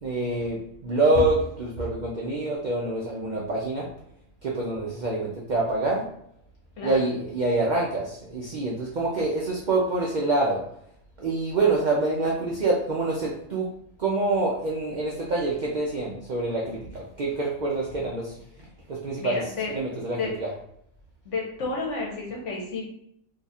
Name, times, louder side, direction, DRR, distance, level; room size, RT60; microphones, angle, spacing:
voice 1, 0.0-3.9 4.4-6.1 6.8-10.6 11.2-13.7 14.0-18.3 18.9-20.5, right 2 dB, 70° right, -3 dB, 0.4 m, -26 dB
voice 2, 19.2-19.7 20.2-20.3 21.2-22.8, left 4 dB, 60° left, -1 dB, 1.1 m, -31 dB
2.7 x 2.4 x 4.1 m, 0.72 s
omnidirectional pair, 1.5 m